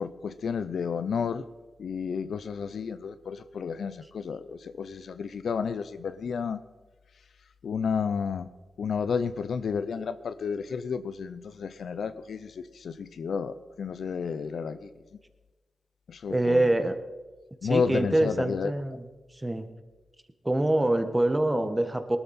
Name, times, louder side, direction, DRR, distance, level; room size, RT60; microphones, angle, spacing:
voice 1, 0.0-1.4 1.8-6.6 7.6-8.5 8.8-14.9 16.1-16.7 17.6-18.7, left 6 dB, 80° left, 13 dB, 0.6 m, -31 dB
voice 2, 16.3-17.0 17.6-19.1 19.4-19.7 20.4-22.2, right 1 dB, 20° right, 9 dB, 1.5 m, -25 dB
19.0 x 13.0 x 4.4 m, 1.2 s
cardioid pair, 50°, 0 cm